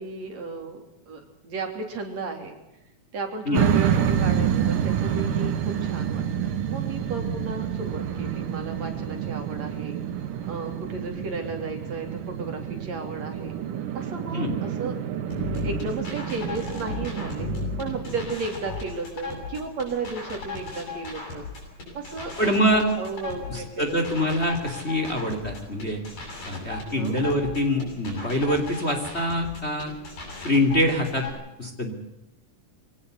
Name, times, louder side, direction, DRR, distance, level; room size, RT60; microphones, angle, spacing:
voice 1, 0.0-2.5 3.1-10.0 10.5-13.6 13.9-14.9 15.6-17.5 17.8-21.5 21.9-24.2 27.0-27.2, right 3 dB, 55° right, 4 dB, 4.6 m, -34 dB
sound 1, 3.5-18.3, right 9 dB, 90° right, 3.3 m, -28 dB
sound 2, 15.3-31.3, left 4 dB, 85° left, 9.6 m, -36 dB
voice 2, 22.4-22.9 23.5-26.0 26.4-29.9 30.4-31.3 31.6-31.9, left 1 dB, 20° left, 4 dB, 3.0 m, -25 dB
24.5 x 18.0 x 8.3 m, 0.93 s
omnidirectional pair, 3.6 m